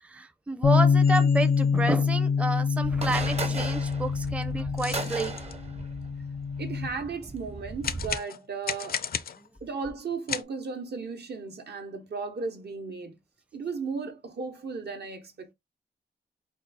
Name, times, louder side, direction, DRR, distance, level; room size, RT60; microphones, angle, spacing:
voice 1, 0.0-5.3 9.4-9.5, right 2 dB, 5° right, 0.5 m, -30 dB
Bass guitar, 0.6-6.9, left 5 dB, 85° left, 0.8 m, -25 dB
sound 1, 1.0-1.8 3.2-3.3 3.9-4.0 4.3-5.6 7.8-9.6 10.3-10.4, left 7 dB, 60° left, 0.4 m, -35 dB
sound 2, 2.8-8.2, right 3 dB, 35° right, 0.8 m, -37 dB
voice 2, 6.6-9.1 9.6-13.2 13.5-15.5, right 4 dB, 70° right, 1.0 m, -35 dB
4.6 x 2.3 x 4.1 m
wide cardioid pair, 115°, 17 cm